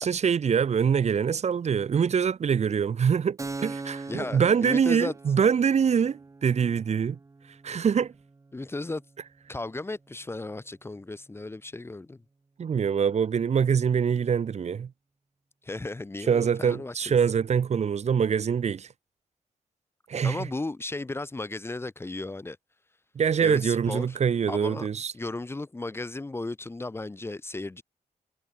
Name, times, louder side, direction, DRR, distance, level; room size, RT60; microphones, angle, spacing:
voice 1, 0.0-7.2 7.6-8.1 12.6-14.9 16.3-18.9 20.1-20.5 23.1-25.1, right 7 dB, 55° right, 1.6 m, -24 dB
Keyboard (musical), 3.4-10.7, right 3 dB, 25° right, 1.3 m, -43 dB
voice 2, 4.1-5.1 8.5-9.0 9.5-12.2 15.6-17.2 20.2-22.6 23.4-24.2 24.5-24.9 25.1-27.8, left 2 dB, 20° left, 1.3 m, -35 dB
wide cardioid pair, 130°, 13 cm